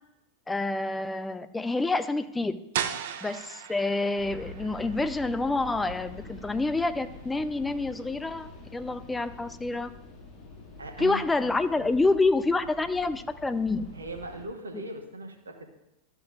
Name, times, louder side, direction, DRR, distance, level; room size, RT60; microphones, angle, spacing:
voice 1, 0.5-2.6 3.2-9.9 11.0-13.9, left 3 dB, 10° left, 10 dB, 0.5 m, -27 dB
sound 1, 2.7-8.4, right 9 dB, 55° right, 0.5 m, -39 dB
sound 2, 4.1-14.5, left 3 dB, 30° left, 2.2 m, -46 dB
voice 2, 10.8-11.9 13.9-15.6, right 2 dB, 75° right, 4 dB, 1.1 m, -40 dB
13.0 x 6.8 x 2.5 m, 0.89 s
figure-of-eight pair, 90°, 0 cm